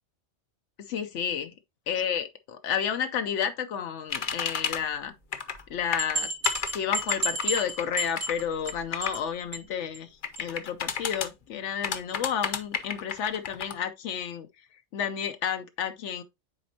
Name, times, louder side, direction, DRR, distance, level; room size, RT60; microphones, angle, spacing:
voice 1, 0.8-1.5 1.9-5.1 5.7-6.3 6.7-14.5 14.9-16.2, left 8 dB, 90° left, 1.0 m, -31 dB
sound 1, 4.1-4.8 5.3-5.6 5.9-9.2 10.2-11.3 11.8-13.7, left 7 dB, 50° left, 0.8 m, -31 dB
sound 2, 5.5-5.6 6.0-8.7 9.0-9.3 9.5-9.6 9.9-10.0 10.4-10.5, right 2 dB, 65° right, 2.4 m, -31 dB
9.4 x 4.2 x 2.8 m
omnidirectional pair, 1.2 m